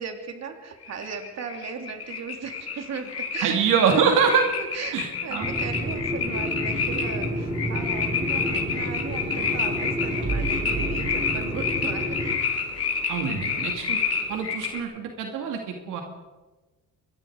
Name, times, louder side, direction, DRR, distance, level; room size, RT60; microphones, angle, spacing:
voice 1, 0.0-4.4 4.7-12.3 13.4-13.8, right 6 dB, 60° right, 4 dB, 3.3 m, -37 dB
sound 1, 0.8-14.8, left 5 dB, 50° left, 4.6 m, -29 dB
voice 2, 3.4-4.4 4.9-5.5 13.1-14.0 14.3-16.0, right 6 dB, 90° right, 3 dB, 2.6 m, -24 dB
sound 2, 5.4-12.4, equal, 15° right, 6.4 m, -30 dB
sound 3, 9.0-11.8 12.7-13.6, right 4 dB, 40° right, 4.0 m, -36 dB
25.0 x 21.5 x 4.9 m, 1.2 s
cardioid pair, 90°, 30 cm